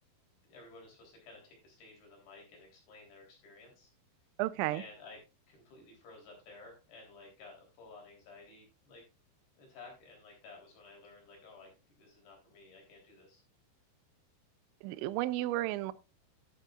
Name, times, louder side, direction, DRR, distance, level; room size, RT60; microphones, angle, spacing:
voice 1, 0.4-3.9 4.7-5.2 5.5-9.0 9.6-11.7 11.9-13.4, left 3 dB, 60° left, 5.5 m, -54 dB
voice 2, 4.4-4.8 14.8-15.9, right 16 dB, 85° right, 2.8 m, -33 dB
12.0 x 9.3 x 2.4 m
omnidirectional pair, 5.4 m